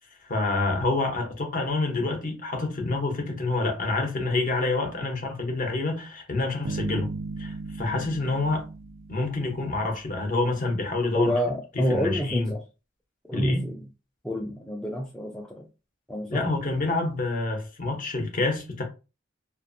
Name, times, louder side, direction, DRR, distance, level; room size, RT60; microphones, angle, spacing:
voice 1, 0.3-7.1 7.4-8.7 9.1-11.3 11.9-12.5 13.3-13.7 16.3-18.8, left 2 dB, 45° left, 0.8 m, -27 dB
sound 1, 6.6-10.0, right 3 dB, 70° right, 0.3 m, -36 dB
voice 2, 11.1-12.6 13.2-13.8 14.2-15.7 16.1-16.4, equal, 5° left, 0.4 m, -28 dB
2.5 x 2.5 x 2.5 m
head